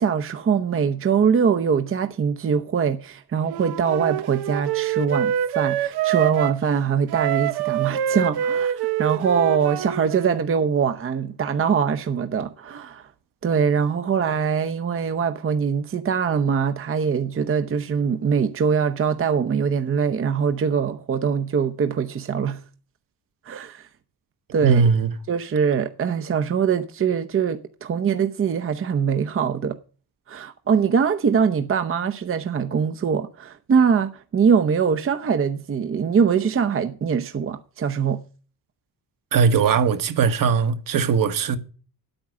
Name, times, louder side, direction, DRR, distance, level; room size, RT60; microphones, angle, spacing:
voice 1, 0.0-13.1 13.4-22.6 23.4-23.9 24.5-24.9 25.3-29.8 30.3-38.2, right 6 dB, 35° right, 0.8 m, -23 dB
Wind instrument woodwind instrument, 3.5-6.6 7.1-10.4, right 11 dB, 85° right, 0.9 m, -25 dB
voice 2, 24.6-25.1 39.3-41.6, right 6 dB, 60° right, 1.4 m, -19 dB
9.3 x 8.9 x 7.3 m
cardioid pair, 115°, 38 cm